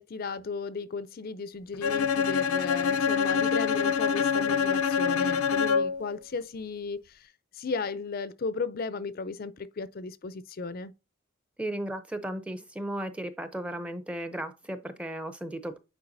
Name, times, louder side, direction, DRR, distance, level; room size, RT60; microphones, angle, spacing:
voice 1, 0.0-10.9, left 4 dB, 45° left, 0.4 m, -35 dB
Bowed string instrument, 1.8-6.1, left 6 dB, 85° left, 0.6 m, -25 dB
voice 2, 11.6-15.8, right 1 dB, 5° right, 0.6 m, -35 dB
8.7 x 4.5 x 2.6 m
head